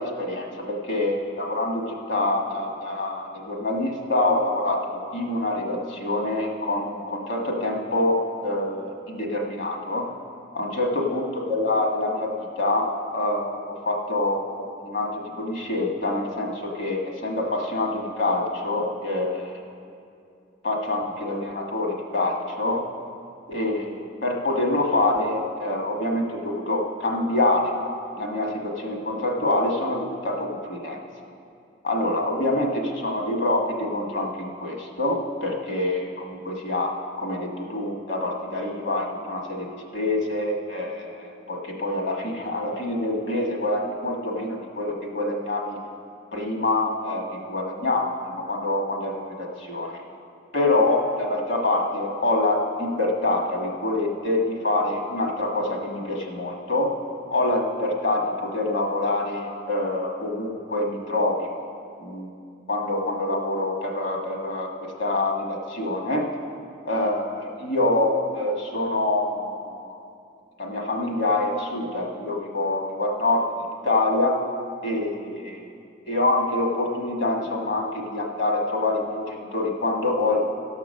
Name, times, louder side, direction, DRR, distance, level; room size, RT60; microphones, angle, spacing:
voice 1, 0.0-10.1 10.5-19.6 20.6-22.8 23.5-27.7 28.2-31.0 31.8-39.7 39.9-45.8 46.3-50.0 50.5-56.9 57.3-61.5 62.0-62.3 62.7-66.2 66.8-70.0 70.6-74.4 74.8-75.7 76.0-80.4, left 2 dB, 65° left, 0 dB, 1.4 m, -26 dB
15.5 x 6.0 x 6.4 m, 2.5 s
head